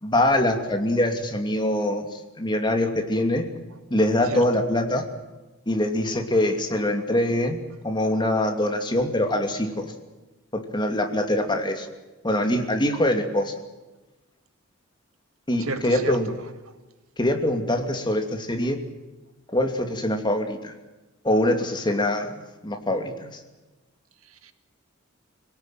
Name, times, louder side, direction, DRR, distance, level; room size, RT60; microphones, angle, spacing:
voice 1, 0.0-3.5 3.9-5.1 5.7-9.9 10.5-11.9 12.2-13.5 15.5-16.3 17.2-18.8 19.5-20.7 21.2-22.3 22.6-23.4, left 1 dB, 20° left, 4 dB, 2.7 m, -24 dB
voice 2, 15.6-16.5 24.2-24.5, right 3 dB, 75° right, 8 dB, 2.1 m, -33 dB
26.5 x 18.0 x 9.3 m, 1.1 s
head